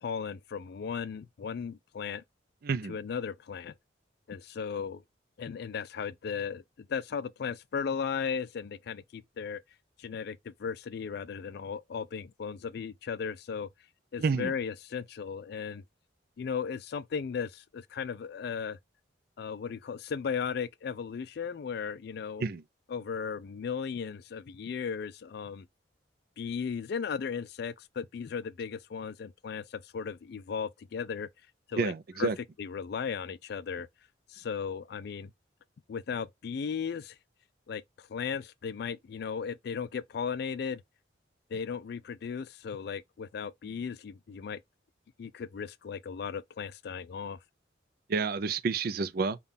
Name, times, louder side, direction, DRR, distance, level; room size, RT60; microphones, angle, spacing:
voice 1, 0.0-2.2 2.9-3.7 4.3-5.0 5.4-9.6 10.0-13.7 14.1-15.8 16.4-18.8 19.4-22.4 22.9-25.7 26.4-31.3 31.7-31.9 32.2-32.3 32.6-33.9 34.3-35.3 35.9-37.2 37.7-40.8 41.5-44.6 45.2-47.4, left 6 dB, 55° left, 0.3 m, -36 dB
voice 2, 2.6-3.0 14.2-14.5 22.4-22.6 31.7-32.4 48.1-49.4, right 4 dB, 50° right, 0.4 m, -29 dB
5.6 x 2.3 x 3.6 m
head